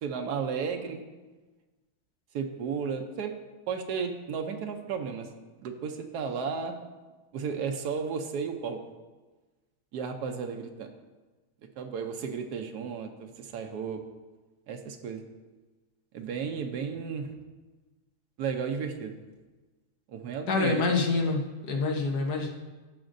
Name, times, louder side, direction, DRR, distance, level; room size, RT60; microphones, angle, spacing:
voice 1, 0.0-1.0 2.3-3.3 3.7-5.3 5.6-6.8 7.3-8.8 9.9-10.9 11.8-14.0 14.7-15.2 16.1-17.4 18.4-19.2 20.1-20.8, right 6 dB, 85° right, 5 dB, 1.2 m, -33 dB
voice 2, 20.5-22.5, left 3 dB, 80° left, 1 dB, 1.6 m, -27 dB
15.0 x 5.1 x 2.6 m, 1.2 s
omnidirectional pair, 1.7 m